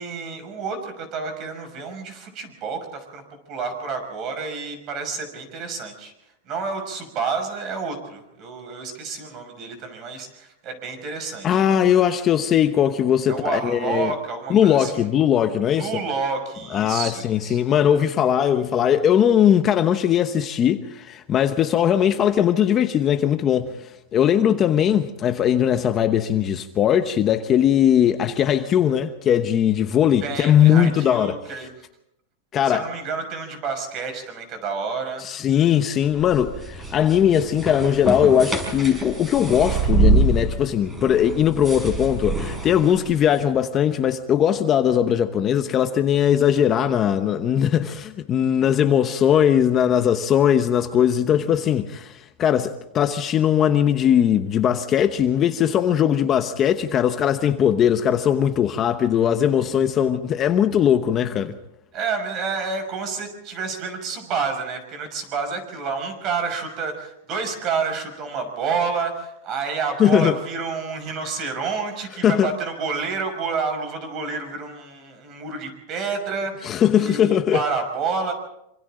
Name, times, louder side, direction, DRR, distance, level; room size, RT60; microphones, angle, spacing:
voice 1, 0.0-3.2 3.5-6.1 6.5-11.6 12.1-12.2 13.3-14.9 15.8-17.6 30.2-31.7 32.6-35.3 61.9-78.3, right 5 dB, 35° right, 5.9 m, -29 dB
voice 2, 11.4-14.1 14.5-16.0 16.7-31.4 32.5-32.9 35.2-61.5 70.0-70.4 72.2-72.5 76.6-77.6, left 9 dB, 25° left, 1.0 m, -19 dB
sound 1, 36.0-43.4, right 3 dB, 10° right, 5.7 m, -25 dB
26.5 x 26.0 x 3.9 m
supercardioid pair, 155°, 0 cm